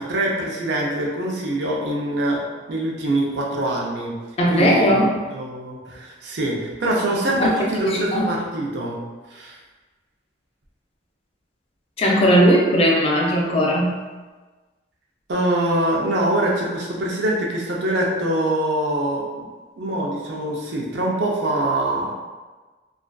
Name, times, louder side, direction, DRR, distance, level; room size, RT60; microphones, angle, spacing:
voice 1, 0.0-2.4 2.7-4.1 4.5-9.0 9.3-9.6 15.3-19.5 19.8-22.2, right 1 dB, 60° right, -2 dB, 0.5 m, -24 dB
voice 2, 4.4-5.2 7.4-7.5 7.8-8.2 12.0-14.0, equal, 30° left, -2 dB, 0.3 m, -18 dB
2.4 x 2.3 x 2.2 m, 1.3 s
head